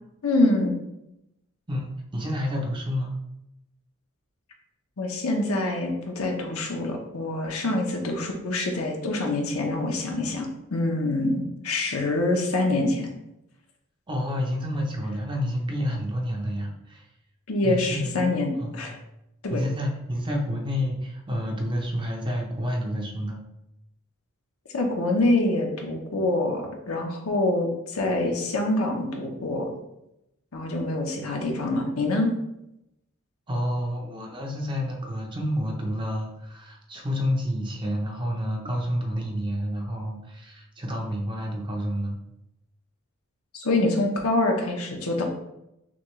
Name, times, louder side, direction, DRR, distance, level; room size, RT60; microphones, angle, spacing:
voice 1, 0.2-0.8 5.0-13.1 17.5-18.9 19.4-19.6 24.7-29.7 30.5-32.3 43.5-45.2, left 2 dB, 70° left, 2 dB, 0.8 m, -25 dB
voice 2, 1.7-3.1 14.1-17.1 17.6-18.2 18.6-19.0 19.5-23.4 33.5-42.2, equal, 20° right, 1 dB, 0.7 m, -29 dB
6.1 x 2.3 x 3.1 m, 0.87 s
head